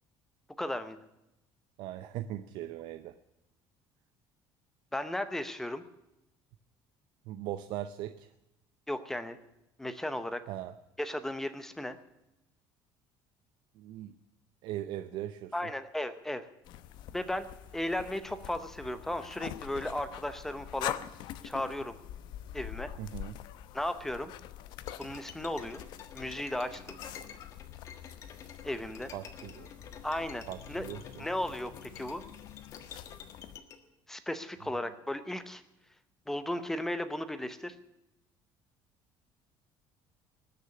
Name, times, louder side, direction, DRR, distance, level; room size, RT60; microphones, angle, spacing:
voice 1, 0.6-1.0 4.9-5.8 8.9-9.4 9.8-10.4 11.0-12.0 15.5-16.5 17.1-17.5 17.7-21.0 21.4-21.9 22.5-22.9 23.7-24.3 25.0-25.8 26.1-27.0 28.6-29.1 30.0-30.9 31.2-32.2 34.1-35.6 36.3-37.7, left 1 dB, 5° left, 11 dB, 0.7 m, -35 dB
voice 2, 1.8-3.2 7.3-8.3 10.5-10.8 13.8-14.1 14.6-15.7 23.0-23.4 29.1-29.7 30.5-31.2, right 12 dB, 60° right, 11 dB, 0.7 m, -39 dB
sound 1, 16.6-33.6, left 12 dB, 60° left, 0.8 m, -45 dB
Bowed string instrument, 24.8-33.8, left 7 dB, 35° left, 1.5 m, -50 dB
19.5 x 6.8 x 9.5 m, 0.90 s
cardioid pair, 180°, 9 cm